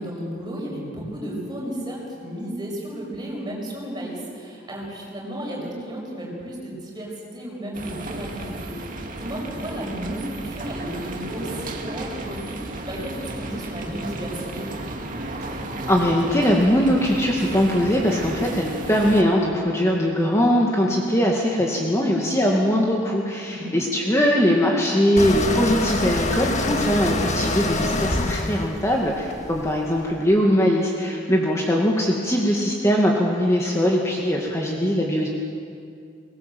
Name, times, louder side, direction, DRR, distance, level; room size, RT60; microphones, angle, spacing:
voice 1, 0.0-14.7 23.5-23.7, right 1 dB, 25° right, -3 dB, 6.6 m, -33 dB
sound 1, 7.7-19.2, right 1 dB, 45° right, 2.2 m, -33 dB
voice 2, 15.9-35.3, equal, 15° left, -2 dB, 2.1 m, -21 dB
sound 2, 25.2-30.1, left 2 dB, 40° left, 1.7 m, -26 dB
23.5 x 20.5 x 7.8 m, 2.4 s
head